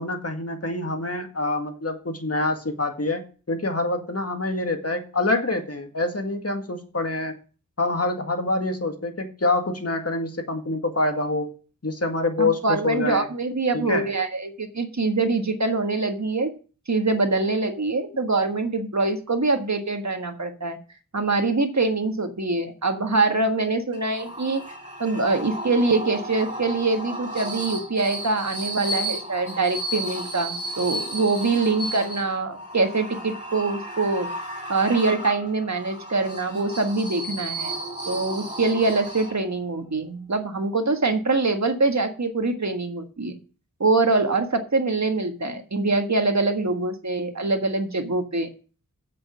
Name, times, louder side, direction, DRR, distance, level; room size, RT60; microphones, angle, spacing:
voice 1, 0.0-7.4 7.8-11.5 11.8-13.3 13.7-14.1, left 2 dB, 45° left, 5 dB, 1.9 m, -26 dB
voice 2, 12.4-16.5 16.9-20.8 21.1-24.6 25.0-34.3 34.7-37.7 38.1-43.4 43.8-48.5, right 3 dB, 55° right, 6 dB, 1.6 m, -24 dB
sound 1, 23.9-39.7, right 1 dB, 20° right, 5.4 m, -34 dB
7.8 x 6.3 x 7.4 m, 0.38 s
wide cardioid pair, 55°, 34 cm